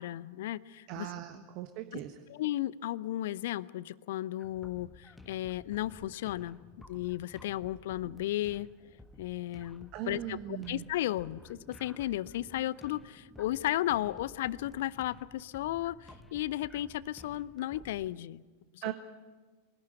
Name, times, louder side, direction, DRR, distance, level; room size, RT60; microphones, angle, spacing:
voice 1, 0.0-1.1 1.9-2.0 2.3-6.6 6.9-8.7 9.2-18.4 18.7-18.8, left 14 dB, 55° left, 20 dB, 0.6 m, -34 dB
voice 2, 0.9-2.2 9.9-10.8 18.8-18.9, right 13 dB, 40° right, 7 dB, 1.4 m, -39 dB
sound 1, 4.4-18.2, left 1 dB, 5° left, 1.7 m, -54 dB
24.0 x 17.5 x 9.0 m, 1.3 s
figure-of-eight pair, 90°, 0 cm